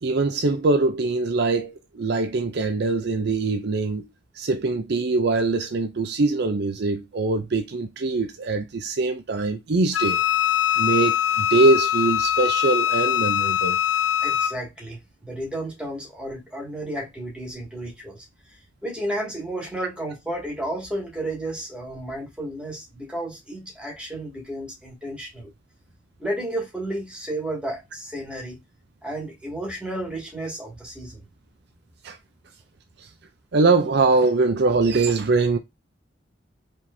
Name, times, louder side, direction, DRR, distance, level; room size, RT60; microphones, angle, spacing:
voice 1, 0.0-4.1 4.4-10.2 10.8-13.8 32.0-32.2 33.5-35.6, right 3 dB, 60° right, 0.5 m, -22 dB
Wind instrument woodwind instrument, 9.9-14.6, left 10 dB, 90° left, 0.5 m, -22 dB
voice 2, 14.2-18.3 18.8-25.5 26.2-28.6 29.0-31.2, right 1 dB, 5° right, 2.1 m, -32 dB
4.9 x 3.7 x 2.7 m
head